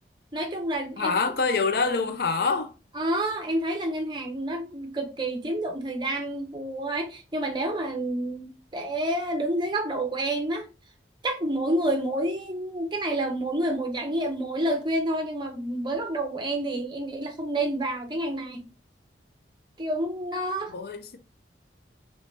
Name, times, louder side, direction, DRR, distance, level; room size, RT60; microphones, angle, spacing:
voice 1, 0.3-1.1 2.9-10.6 11.2-18.6 19.8-20.7, right 1 dB, 25° right, 0.7 m, -29 dB
voice 2, 1.0-2.7 20.7-21.2, left 4 dB, 55° left, 0.4 m, -25 dB
3.0 x 2.7 x 3.2 m
head